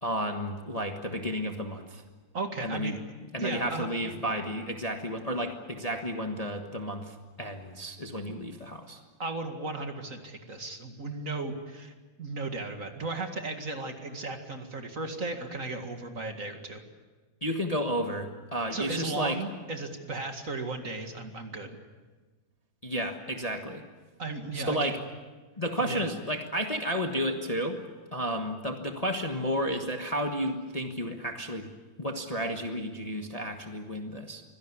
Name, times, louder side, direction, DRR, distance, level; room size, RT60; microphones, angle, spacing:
voice 1, 0.0-2.0 2.6-2.9 3.3-9.0 17.4-19.4 22.8-23.8 24.5-25.0 25.6-27.8 28.1-31.7 32.0-34.4, equal, 20° left, 4 dB, 1.3 m, -32 dB
voice 2, 2.3-3.0 3.4-3.9 9.2-16.8 18.7-21.8 24.2-24.9 25.8-26.0, right 3 dB, 45° right, 5 dB, 2.4 m, -35 dB
24.5 x 17.0 x 9.7 m, 1.3 s
omnidirectional pair, 2.1 m